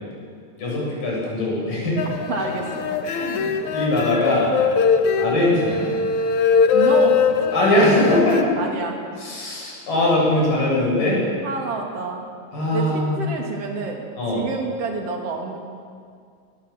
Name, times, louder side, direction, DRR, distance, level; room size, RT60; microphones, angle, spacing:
voice 1, 0.6-1.9 3.0-4.5 5.2-5.9 7.5-8.5 9.2-11.2 12.5-13.2 14.2-14.4, left 1 dB, 90° left, -4 dB, 9.8 m, -21 dB
sound 1, 2.0-8.4, left 6 dB, 65° left, 2.4 m, -21 dB
voice 2, 2.3-2.9 6.7-7.2 8.6-9.0 11.4-12.2 12.7-14.0 14.3-15.6, right 5 dB, 50° right, 2 dB, 3.6 m, -27 dB
24.5 x 20.0 x 7.6 m, 2.1 s
omnidirectional pair, 3.8 m